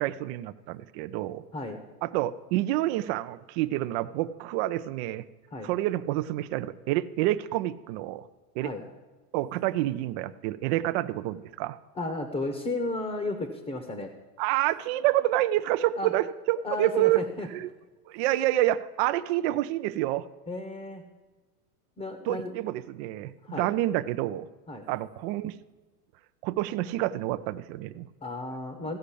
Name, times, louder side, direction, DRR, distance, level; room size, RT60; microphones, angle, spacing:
voice 1, 0.0-1.4 2.0-5.3 5.6-8.3 8.6-8.7 9.3-11.8 14.4-17.2 17.5-17.7 18.1-20.3 22.3-24.5 24.9-25.6 26.4-28.1, right 15 dB, 45° right, 12 dB, 0.5 m, -28 dB
voice 2, 12.0-14.1 16.0-16.1 16.6-17.5 20.5-21.0 22.0-22.5 23.4-23.7 24.7-24.9 28.2-29.0, left 2 dB, 15° left, 7 dB, 0.9 m, -33 dB
15.0 x 5.1 x 8.4 m, 1.2 s
supercardioid pair, 140°, 48 cm